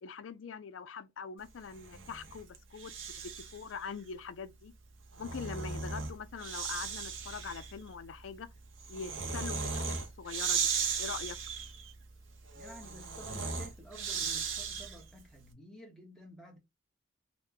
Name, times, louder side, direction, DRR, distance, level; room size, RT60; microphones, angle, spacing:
voice 1, 0.0-2.9 3.2-4.7 5.2-8.5 8.9-10.7 11.0-11.4, left 5 dB, 75° left, 0.4 m, -43 dB
Breathing, 1.7-3.7 4.9-15.2, right 5 dB, 85° right, 0.8 m, -37 dB
voice 2, 12.5-16.6, equal, 5° left, 0.9 m, -52 dB
2.9 x 2.1 x 3.6 m
head